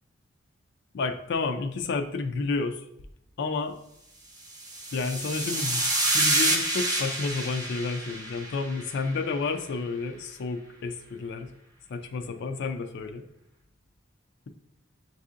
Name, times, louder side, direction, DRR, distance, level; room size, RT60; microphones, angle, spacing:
voice 1, 0.9-2.8 3.4-3.8 4.9-11.5 11.9-13.2, left 4 dB, 60° left, 6 dB, 0.4 m, -31 dB
sound 1, 4.5-9.0, right 1 dB, 20° right, 0.8 m, -28 dB
7.2 x 2.7 x 2.4 m, 0.77 s
head